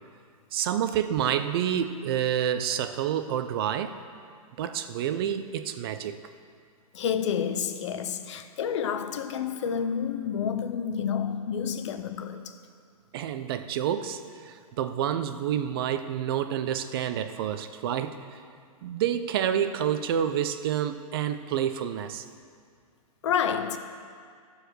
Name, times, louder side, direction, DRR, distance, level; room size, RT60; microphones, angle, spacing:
voice 1, 0.5-4.0 4.6-6.2 13.1-18.4 18.8-22.2, right 9 dB, 40° right, 0.6 m, -28 dB
voice 2, 6.9-12.6 23.2-23.8, left 7 dB, 55° left, 0.7 m, -29 dB
13.0 x 4.9 x 6.4 m
hypercardioid pair, 150°, 19 cm